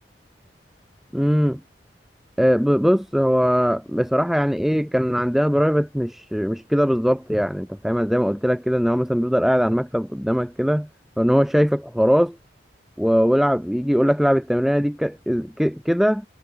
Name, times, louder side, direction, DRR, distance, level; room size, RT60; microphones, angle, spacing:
voice 1, 1.1-1.6 2.4-10.9 11.2-12.4 13.0-16.3, equal, ahead, 2.4 m, -20 dB
head